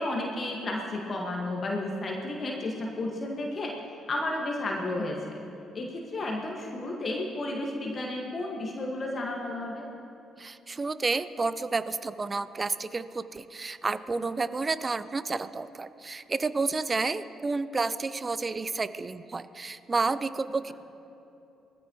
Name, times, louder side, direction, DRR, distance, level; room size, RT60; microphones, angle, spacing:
voice 1, 0.0-3.7 4.1-5.4 5.7-9.9, left 2 dB, 35° left, 0 dB, 1.7 m, -32 dB
voice 2, 10.4-20.7, right 3 dB, 30° right, 14 dB, 0.6 m, -30 dB
20.5 x 14.0 x 3.1 m, 2.8 s
figure-of-eight pair, 45°, 0 cm